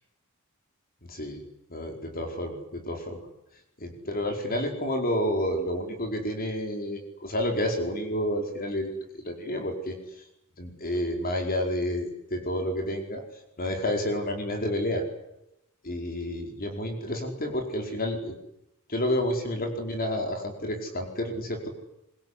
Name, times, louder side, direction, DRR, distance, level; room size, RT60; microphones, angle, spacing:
voice 1, 1.1-1.4 1.7-3.2 3.8-9.0 9.2-10.0 10.6-13.2 13.6-15.0 15.8-18.3 18.9-21.7, left 1 dB, 40° left, 4 dB, 4.9 m, -30 dB
24.5 x 22.5 x 10.0 m, 0.83 s
head